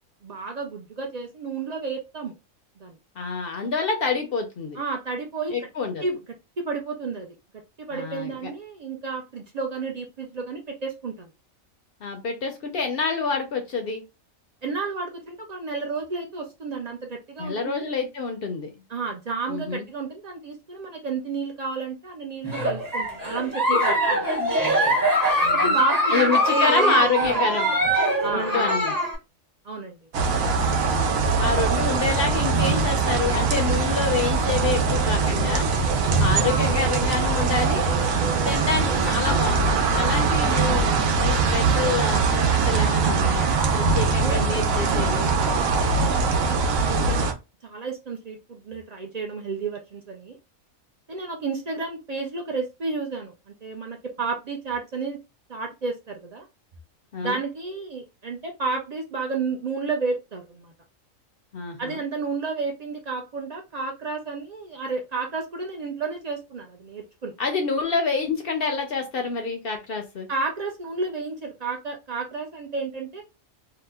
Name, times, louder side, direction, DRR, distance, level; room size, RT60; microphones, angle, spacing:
voice 1, 0.2-2.3 2.8-2.9 4.7-5.6 6.0-6.2 6.6-7.3 7.8-11.3 14.6-17.9 18.9-24.3 25.5-27.4 28.2-28.7 29.6-30.0 36.4-36.7 44.2-47.3 47.6-50.4 51.1-55.2 55.5-56.4 57.2-60.7 61.8-67.3 70.3-73.2, right 4 dB, 60° right, 1 dB, 0.4 m, -31 dB
voice 2, 3.2-4.8 5.5-6.0 7.9-8.3 12.0-14.0 17.4-18.7 19.5-19.9 25.4-25.8 26.1-27.7 28.3-28.9 30.8-35.7 36.2-37.8 38.3-42.2 42.5-45.3 57.1-57.4 61.5-62.0 67.4-70.3, left 4 dB, 60° left, 5 dB, 0.6 m, -27 dB
Giggle, 22.4-29.1, equal, 15° right, 0.8 m, -22 dB
sound 1, 30.1-47.3, right 4 dB, 80° right, 1.0 m, -22 dB
2.8 x 2.1 x 3.3 m, 0.26 s
omnidirectional pair, 1.4 m